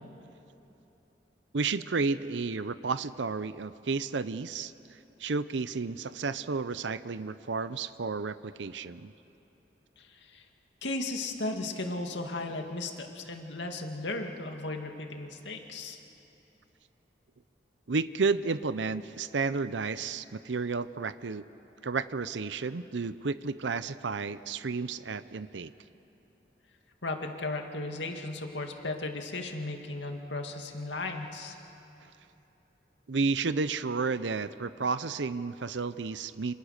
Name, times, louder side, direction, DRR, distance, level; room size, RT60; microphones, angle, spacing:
voice 1, 1.5-4.7 5.2-9.1 17.9-21.5 21.8-25.7 33.1-36.5, right 4 dB, 85° right, 14 dB, 0.6 m, -32 dB
voice 2, 10.0-10.4 10.8-16.0 27.0-31.6, left 2 dB, 85° left, 3 dB, 2.2 m, -36 dB
28.0 x 27.0 x 6.6 m, 2.9 s
head